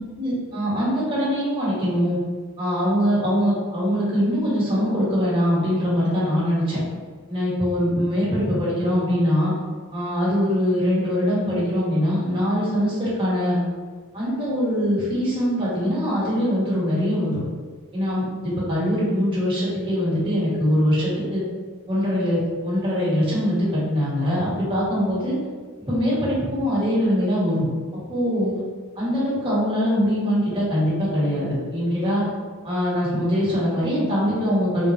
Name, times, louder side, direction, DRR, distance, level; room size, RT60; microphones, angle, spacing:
voice 1, 0.2-2.2 2.6-6.8 7.3-9.5 9.9-13.6 14.1-17.5 17.9-21.4 21.9-25.4 25.9-27.7 28.1-28.5 28.9-32.2 32.6-34.9, equal, 25° right, -9 dB, 1.3 m, -22 dB
3.7 x 2.4 x 3.0 m, 1.5 s
head